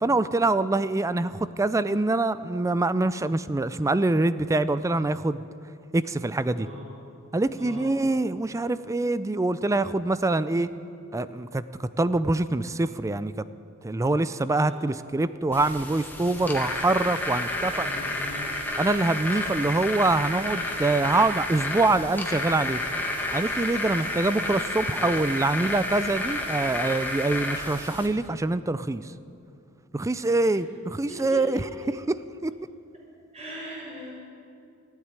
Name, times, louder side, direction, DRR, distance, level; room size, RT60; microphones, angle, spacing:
voice 1, 0.0-5.4 5.9-6.7 7.3-10.7 11.1-13.4 13.8-17.9 18.8-22.8 23.3-29.1 29.9-32.2 32.4-32.5, right 2 dB, 15° right, 14 dB, 0.4 m, -25 dB
voice 2, 6.5-6.9 7.6-7.9 14.5-14.7 17.6-18.5 30.4-30.5 31.1-31.4 32.9-33.0 33.3-34.1, equal, 30° right, -4 dB, 4.8 m, -40 dB
sound 1, 15.5-28.1, left 1 dB, 10° left, 1.6 m, -31 dB
16.0 x 8.3 x 9.7 m, 2.5 s
head